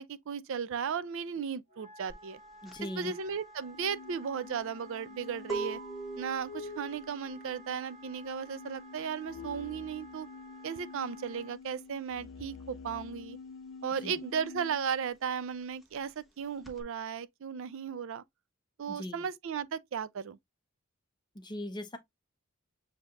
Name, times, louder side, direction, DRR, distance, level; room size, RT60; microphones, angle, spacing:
voice 1, 0.0-2.4 3.0-5.8 6.2-10.3 10.6-13.4 13.8-18.2 18.8-20.4, right 7 dB, 60° right, 0.4 m, -36 dB
Wind instrument woodwind instrument, 1.7-11.6, right 2 dB, 35° right, 1.1 m, -54 dB
sound 1, 2.1-12.3 12.6-16.8, right 4 dB, ahead, 1.1 m, -44 dB
voice 2, 2.6-3.1 14.0-14.2 18.9-19.2 21.4-22.0, left 1 dB, 20° left, 0.7 m, -39 dB
sound 2, 3.7-14.9, left 4 dB, 60° left, 0.3 m, -47 dB
6.9 x 2.8 x 2.4 m
head